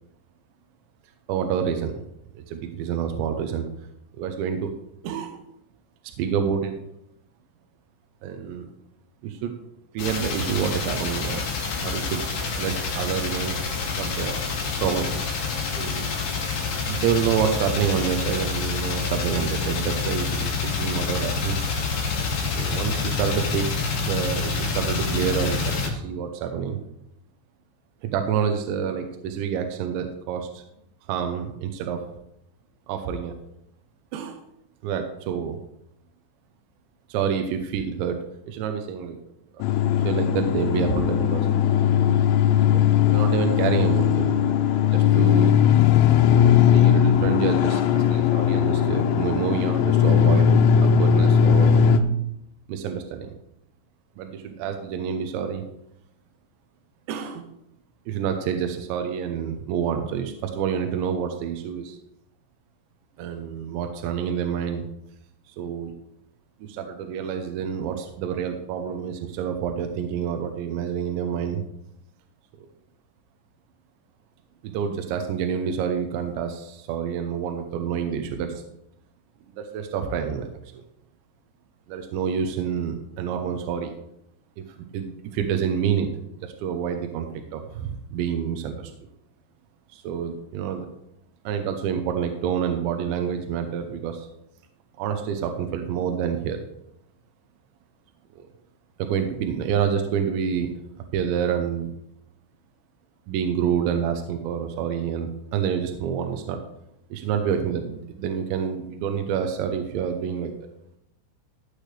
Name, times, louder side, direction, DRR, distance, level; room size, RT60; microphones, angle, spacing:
voice 1, 1.3-2.1 2.4-3.7 4.1-4.7 5.0-5.4 6.2-6.7 8.2-8.7 9.2-9.5 9.9-11.4 11.8-12.2 12.6-13.6 14.0-14.4 14.8-15.3 15.7-16.1 16.9-21.5 22.6-23.7 24.0-26.8 28.0-30.6 31.1-32.0 32.9-33.3 34.1-34.4 34.8-35.6 37.1-38.2 38.5-39.2 39.5-39.7 40.0-41.5 42.7-42.8 43.1-44.5 44.8-45.6 46.7-51.9 52.7-53.3 54.2-55.6 57.1-57.5 58.1-62.0 63.2-64.9 65.5-65.9 66.6-71.6 72.6-72.7 74.6-78.6 79.5-80.8 81.9-83.9 84.6-86.1 86.4-88.9 89.9-90.9 91.4-94.3 95.0-96.6 98.3-98.5 99.0-100.7 101.1-101.9 103.3-106.6 107.1-110.5, right 8 dB, 75° right, 5 dB, 2.8 m, -28 dB
sound 1, 10.0-25.9, left 5 dB, 50° left, 3.3 m, -27 dB
sound 2, 39.6-52.0, left 8 dB, 90° left, 3.3 m, -19 dB
15.5 x 8.2 x 3.3 m, 0.81 s
omnidirectional pair, 5.9 m